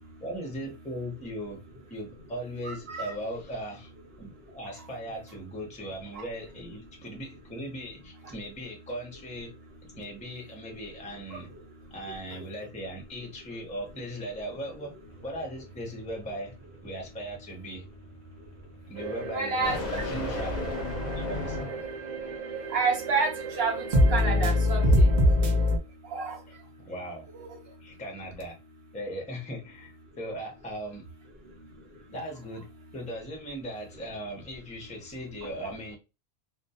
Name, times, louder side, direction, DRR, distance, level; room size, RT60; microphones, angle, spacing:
voice 1, 0.2-1.6 1.9-3.9 4.2-9.5 10.0-11.5 11.9-15.0 15.2-16.5 16.8-17.8 18.9-21.6 26.5-27.3 27.8-28.6 28.9-31.0 32.1-32.7 32.9-36.0, equal, 10° left, 0.5 m, -38 dB
voice 2, 2.6-3.1 11.3-11.4 19.3-20.0 22.7-23.3 23.6-24.9 26.1-26.4 27.3-27.5, right 4 dB, 65° right, 0.9 m, -29 dB
sound 1, 15.1-22.0, left 3 dB, 55° left, 0.7 m, -37 dB
sound 2, 19.0-25.8, left 1 dB, 50° right, 0.6 m, -26 dB
2.2 x 2.2 x 2.6 m
omnidirectional pair, 1.1 m